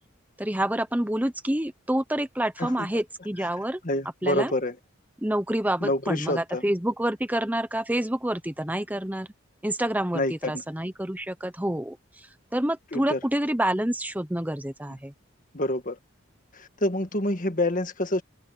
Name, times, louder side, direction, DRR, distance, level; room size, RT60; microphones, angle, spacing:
voice 1, 0.4-3.8 4.2-4.5 5.2-9.3 9.6-15.1, right 1 dB, 10° right, 0.9 m, -28 dB
voice 2, 3.8-4.8 5.8-6.6 10.1-10.6 12.9-13.2 15.5-16.0 16.5-18.2, left 1 dB, 40° left, 1.8 m, -27 dB
head